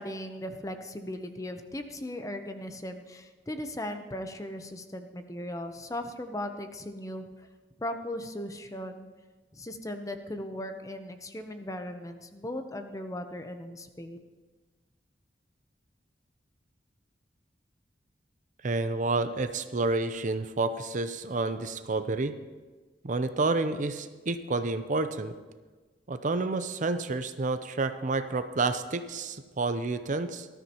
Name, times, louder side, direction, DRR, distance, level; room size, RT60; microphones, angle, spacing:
voice 1, 0.0-7.5 7.8-9.1 9.5-14.2, left 1 dB, 20° left, 7 dB, 0.8 m, -38 dB
voice 2, 18.6-22.3 23.0-25.3 26.1-30.5, right 3 dB, 45° right, 10 dB, 0.6 m, -29 dB
19.0 x 12.5 x 3.0 m, 1.3 s
head